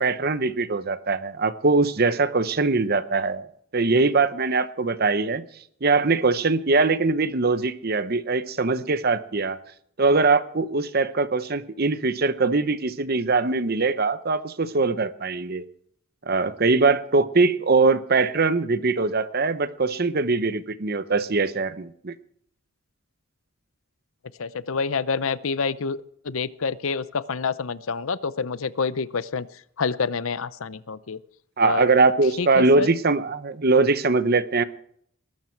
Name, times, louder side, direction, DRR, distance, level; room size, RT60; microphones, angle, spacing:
voice 1, 0.0-3.4 3.7-5.4 5.8-9.6 10.0-15.7 16.3-22.1 31.6-34.6, right 3 dB, 45° right, 13 dB, 0.8 m, -22 dB
voice 2, 24.4-29.5 29.8-31.2 31.6-31.9 32.4-32.9, left 5 dB, 70° left, 17 dB, 0.6 m, -27 dB
20.5 x 12.5 x 4.6 m, 0.66 s
head